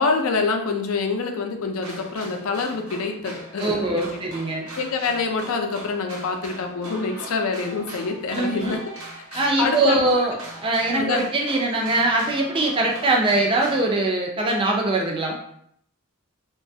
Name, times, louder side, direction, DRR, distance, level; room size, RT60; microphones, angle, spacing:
voice 1, 0.0-4.2 4.8-8.8 9.3-10.0 10.9-11.2, left 4 dB, 80° left, 4 dB, 0.5 m, -26 dB
sound 1, 1.8-13.8, right 2 dB, 90° right, 0.8 m, -40 dB
voice 2, 3.6-4.7 8.3-8.8 9.3-15.4, right 2 dB, 25° right, 0 dB, 0.4 m, -22 dB
3.0 x 2.3 x 2.6 m, 0.68 s
head